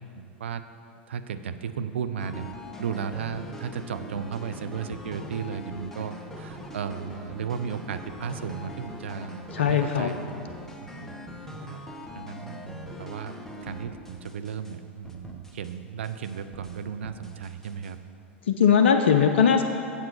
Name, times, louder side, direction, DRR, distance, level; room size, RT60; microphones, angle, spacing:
voice 1, 0.2-0.6 1.1-2.5 2.8-10.3 10.8-11.1 11.7-11.8 12.1-18.0, right 7 dB, 75° right, 10 dB, 0.4 m, -35 dB
sound 1, 2.2-14.8 15.0-15.7 16.0-17.9, left 1 dB, 5° left, 0.8 m, -42 dB
voice 2, 9.5-10.1 18.5-19.6, left 7 dB, 70° left, 5 dB, 0.4 m, -20 dB
8.0 x 7.2 x 4.6 m, 2.7 s
figure-of-eight pair, 90°, 6 cm